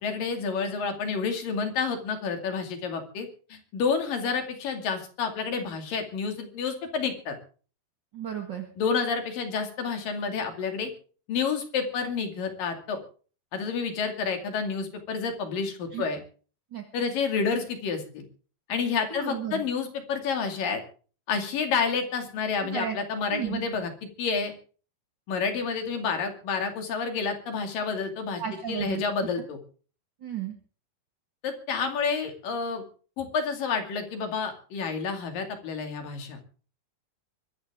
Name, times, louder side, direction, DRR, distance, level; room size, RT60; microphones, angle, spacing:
voice 1, 0.0-7.4 8.8-10.9 11.3-13.0 13.5-16.2 16.9-18.2 18.7-20.8 21.3-23.9 24.2-24.5 25.3-28.4 28.7-29.6 31.4-32.8 33.2-36.4, left 5 dB, 60° left, 5 dB, 4.0 m, -29 dB
voice 2, 8.1-8.7 15.9-16.0 16.7-16.8 19.1-19.6 22.6-23.0 23.3-23.6 28.4-29.0 30.2-30.5, right 8 dB, 45° right, 3 dB, 1.6 m, -33 dB
23.5 x 14.0 x 3.7 m, 0.40 s
omnidirectional pair, 4.6 m